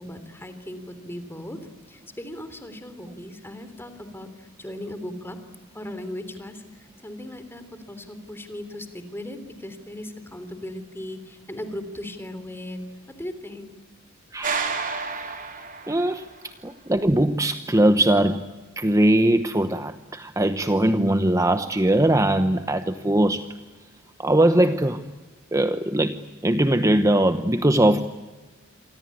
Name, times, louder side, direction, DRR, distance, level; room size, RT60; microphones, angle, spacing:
voice 1, 0.0-1.6 1.9-5.4 5.7-12.8 13.2-13.7, left 1 dB, 10° left, 10 dB, 3.3 m, -37 dB
voice 2, 14.3-14.7 15.9-18.5 18.8-23.5 24.2-25.0 25.5-28.0, right 1 dB, 15° right, 9 dB, 0.9 m, -21 dB
sound 1, 14.4-16.4, right 5 dB, 40° right, 3.4 m, -30 dB
28.5 x 24.5 x 8.6 m, 1.2 s
head